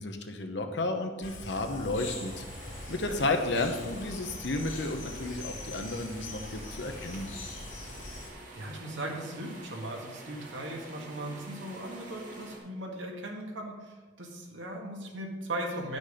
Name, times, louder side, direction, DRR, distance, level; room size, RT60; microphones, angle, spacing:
voice 1, 0.0-2.4 2.9-7.3, left 2 dB, 60° left, 5 dB, 0.9 m, -32 dB
sound 1, 1.2-8.3, left 2 dB, 80° left, 2.4 m, -42 dB
sound 2, 2.2-12.6, right 2 dB, 45° right, 1.9 m, -48 dB
voice 2, 8.5-16.0, right 1 dB, 75° right, 0 dB, 1.8 m, -38 dB
10.0 x 6.2 x 5.1 m, 1.3 s
head